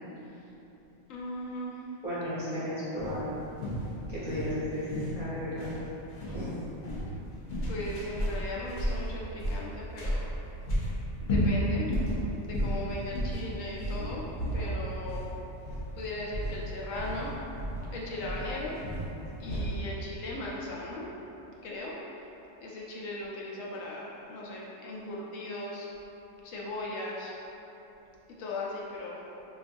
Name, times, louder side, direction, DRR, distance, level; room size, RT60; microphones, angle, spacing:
voice 1, 1.1-1.7 7.7-10.3 11.2-11.9 12.4-14.2 14.5-15.3 16.0-17.3 17.9-18.7 19.4-21.1 21.6-21.9 22.6-25.9 26.4-27.3 28.4-29.2, left 1 dB, 75° left, -4 dB, 0.9 m, -38 dB
voice 2, 2.0-3.3 4.1-5.7 6.3-6.5, equal, 40° right, -12 dB, 0.6 m, -34 dB
sound 1, 3.0-19.8, equal, 50° left, 0.6 m, -33 dB
3.9 x 2.5 x 2.5 m, 3.0 s
omnidirectional pair, 1.4 m